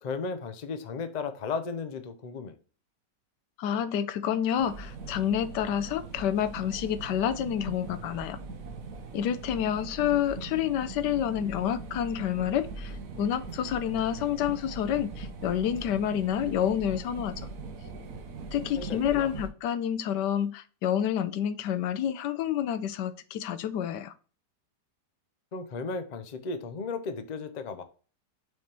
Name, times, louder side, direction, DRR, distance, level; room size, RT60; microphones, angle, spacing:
voice 1, 0.0-2.6 18.8-19.3 25.5-27.8, left 4 dB, 60° left, 0.4 m, -35 dB
voice 2, 3.6-8.4 9.1-17.4 18.5-24.1, left 9 dB, 80° left, 1.2 m, -29 dB
sound 1, 4.6-19.5, right 3 dB, 55° right, 1.2 m, -41 dB
6.3 x 3.5 x 4.3 m
omnidirectional pair, 1.9 m